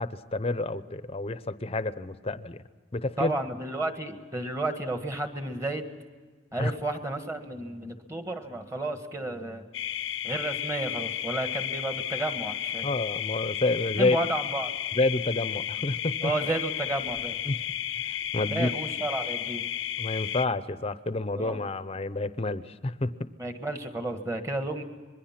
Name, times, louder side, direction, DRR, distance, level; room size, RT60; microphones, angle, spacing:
voice 1, 0.0-2.6 2.9-3.3 6.6-6.7 12.8-14.2 14.9-16.3 17.4-17.6 18.0-18.1 18.3-18.7 20.0-23.3, left 2 dB, 30° left, 13 dB, 0.7 m, -29 dB
voice 2, 3.2-5.8 6.5-9.6 10.2-12.8 14.0-14.7 16.2-17.4 18.5-19.6 21.4-21.6 23.4-24.8, right 2 dB, 15° right, 6 dB, 1.6 m, -32 dB
sound 1, 9.7-20.5, left 11 dB, 75° left, 0.6 m, -33 dB
26.5 x 21.5 x 5.9 m, 1.5 s
head